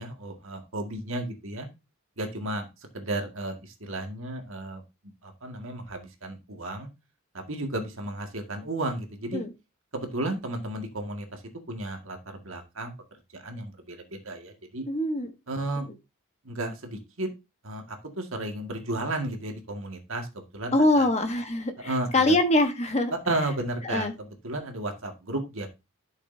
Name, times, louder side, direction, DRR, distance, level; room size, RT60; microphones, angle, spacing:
voice 1, 0.0-1.7 2.2-2.7 2.9-4.8 5.2-6.9 7.3-9.4 9.9-11.4 11.7-12.9 13.3-14.8 15.5-15.9 16.5-17.3 17.6-21.1 21.8-22.4 23.3-25.7, right 1 dB, 60° right, 4 dB, 2.0 m, -33 dB
voice 2, 14.9-15.3 20.7-23.1 23.8-24.1, left 1 dB, 30° left, 7 dB, 1.2 m, -24 dB
12.0 x 6.6 x 2.7 m, 0.25 s
head